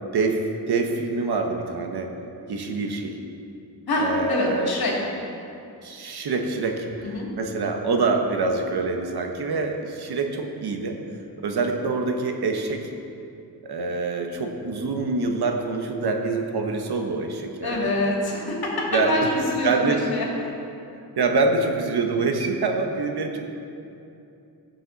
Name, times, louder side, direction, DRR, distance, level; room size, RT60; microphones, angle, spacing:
voice 1, 0.1-2.1 2.5-3.2 4.0-4.7 5.8-11.0 11.4-12.9 13.6-17.9 18.9-19.3 19.6-20.0 21.2-23.4, right 3 dB, 75° right, 3 dB, 1.3 m, -25 dB
voice 2, 3.9-4.9 7.0-7.3 17.6-20.5, left 1 dB, 65° left, -3 dB, 2.8 m, -25 dB
15.5 x 7.4 x 4.1 m, 2.7 s
cardioid pair, 90°, 39 cm